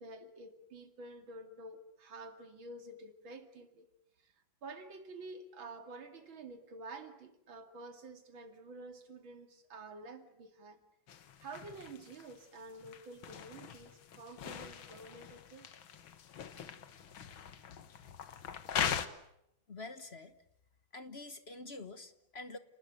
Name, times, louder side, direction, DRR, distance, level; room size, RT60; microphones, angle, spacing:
voice 1, 0.0-3.9 4.2-4.3 4.6-10.8 11.4-15.7, right 2 dB, 80° right, 7 dB, 3.1 m, -49 dB
sound 1, 11.1-19.1, left 8 dB, 85° left, 2.2 m, -41 dB
voice 2, 19.7-20.3 20.9-22.6, left 3 dB, 35° left, 11 dB, 1.2 m, -46 dB
30.0 x 20.0 x 9.2 m, 0.79 s
omnidirectional pair, 2.1 m